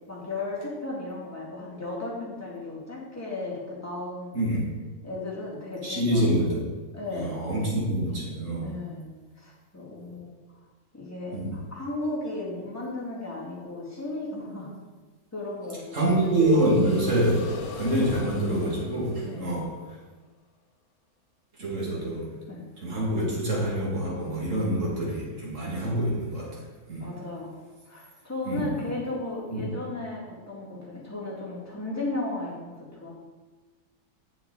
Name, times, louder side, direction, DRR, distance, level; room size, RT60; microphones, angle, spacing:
voice 1, 0.1-4.4 5.0-6.5 6.9-7.3 8.6-9.1 9.4-10.3 10.9-14.7 15.3-16.1 19.2-19.5 22.5-22.7 27.0-27.6 27.9-33.1, left 2 dB, 10° left, -6 dB, 2.2 m, -35 dB
voice 2, 5.8-6.7 7.1-8.8 11.3-11.5 15.9-17.4 17.8-19.7 21.6-22.3 22.8-26.6 26.9-27.1 28.5-28.9 29.5-29.7, right 1 dB, 55° right, -5 dB, 2.5 m, -26 dB
sound 1, 15.9-19.9, left 4 dB, 70° left, 1.4 m, -41 dB
7.8 x 7.2 x 4.0 m, 1.3 s
omnidirectional pair, 1.6 m